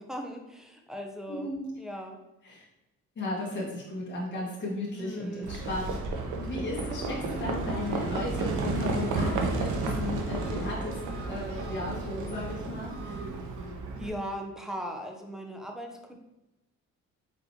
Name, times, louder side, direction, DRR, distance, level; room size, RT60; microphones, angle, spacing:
voice 1, 0.0-1.5 1.8-2.2 4.9-5.7 14.0-16.1, equal, ahead, 2 dB, 0.7 m, -38 dB
voice 2, 1.3-1.7 2.4-2.6 3.1-5.9 6.3-11.0 11.2-13.2, left 2 dB, 35° left, -5 dB, 1.4 m, -35 dB
Livestock farm animals working animals, 5.4-14.1, right 3 dB, 80° right, 0.8 m, -32 dB
Engine, 6.9-13.6, right 1 dB, 45° right, 1.0 m, -48 dB
4.3 x 4.0 x 2.8 m, 0.96 s
cardioid pair, 90°, 30 cm